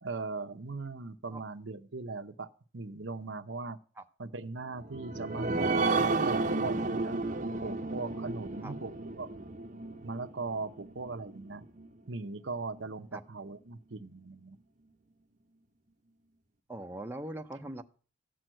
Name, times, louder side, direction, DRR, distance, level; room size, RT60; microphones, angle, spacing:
voice 1, 0.0-2.5 2.7-3.8 4.2-5.8 6.3-7.2 7.6-9.3 10.0-11.6 12.1-14.6, right 3 dB, 65° right, 9 dB, 0.9 m, -39 dB
sound 1, 4.8-11.9 12.3-12.4 12.8-12.9, right 3 dB, 40° right, 0.9 m, -32 dB
voice 2, 16.7-17.8, right 1 dB, 10° right, 4 dB, 0.8 m, -41 dB
14.5 x 6.2 x 9.0 m, 0.39 s
head